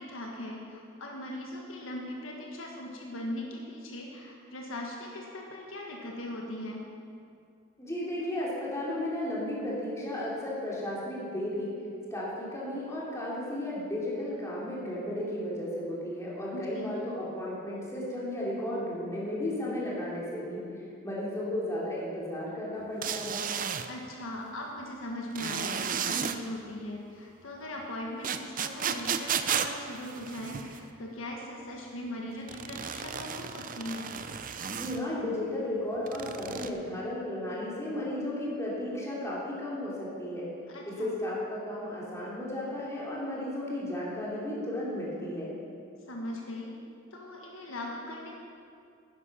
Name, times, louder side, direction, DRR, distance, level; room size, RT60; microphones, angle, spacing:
voice 1, 0.0-6.8 16.5-17.0 23.9-34.1 40.7-41.1 46.1-46.7 47.1-48.3, left 1 dB, 70° left, -1 dB, 1.5 m, -39 dB
voice 2, 7.8-11.7 12.1-23.4 34.7-40.5 40.9-45.6, left 1 dB, 15° left, -6 dB, 3.0 m, -34 dB
sound 1, 23.0-23.9 25.4-26.4 28.2-30.8 32.5-35.0 36.1-36.7, right 7 dB, 40° right, 0.5 m, -33 dB
11.0 x 10.0 x 5.7 m, 2.4 s
head